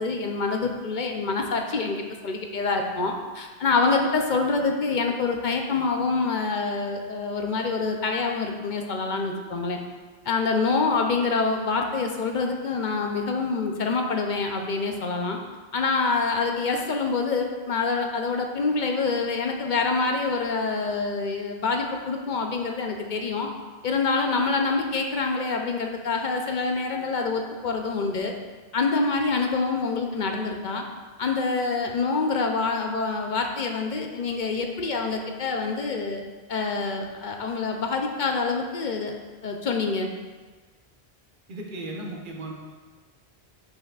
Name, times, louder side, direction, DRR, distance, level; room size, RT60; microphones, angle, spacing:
voice 1, 0.0-9.8 10.2-15.4 15.7-23.5 23.8-28.3 28.7-30.8 31.2-36.2 36.5-39.1 39.4-40.1, left 4 dB, 55° left, 3 dB, 0.7 m, -26 dB
voice 2, 41.5-42.5, right 2 dB, 50° right, -1 dB, 1.0 m, -35 dB
7.9 x 5.2 x 2.4 m, 1.3 s
omnidirectional pair, 1.1 m